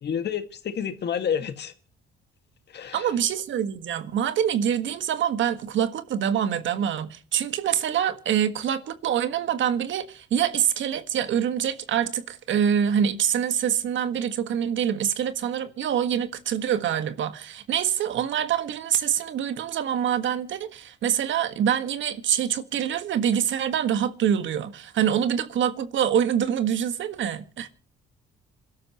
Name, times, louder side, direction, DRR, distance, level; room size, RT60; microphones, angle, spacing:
voice 1, 0.0-1.7 2.7-3.1, left 8 dB, 60° left, 1.9 m, -29 dB
voice 2, 2.9-27.7, right 9 dB, 70° right, 1.6 m, -25 dB
27.5 x 12.5 x 3.0 m
cardioid pair, 90°, 20 cm